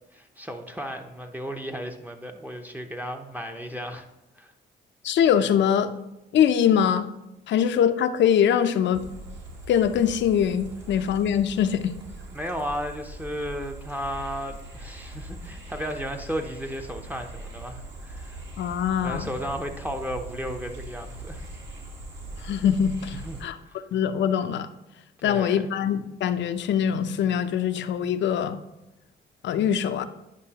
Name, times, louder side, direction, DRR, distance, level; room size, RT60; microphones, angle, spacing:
voice 1, 0.1-4.1 4.4-4.5 12.3-18.4 19.0-21.4 23.1-23.4 23.7-23.8 25.2-25.7, equal, 10° right, 4 dB, 0.6 m, -34 dB
voice 2, 5.0-5.9 6.3-7.1 7.5-9.0 9.7-11.9 18.6-19.3 22.4-23.6 23.9-24.7 25.2-28.6 29.4-30.0, left 8 dB, 65° left, 11 dB, 0.5 m, -23 dB
sound 1, 8.9-23.4, right 1 dB, 65° right, 1.6 m, -41 dB
9.7 x 5.3 x 2.9 m, 0.92 s
cardioid pair, 90°, 20 cm